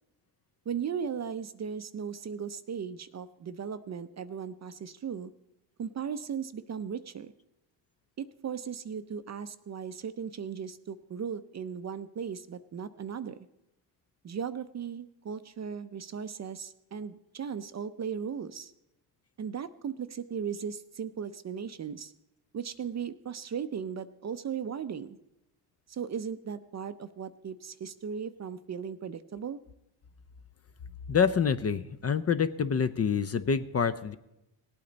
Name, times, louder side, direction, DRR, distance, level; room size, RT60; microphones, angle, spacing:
voice 1, 0.7-5.3 5.8-7.3 8.2-13.4 14.2-18.7 19.4-22.1 22.5-25.2 25.9-29.6, right 7 dB, 35° right, 13 dB, 0.5 m, -37 dB
voice 2, 31.1-34.2, left 6 dB, 30° left, 12 dB, 0.5 m, -27 dB
18.0 x 8.6 x 4.0 m, 0.88 s
cardioid pair, 80°, 48 cm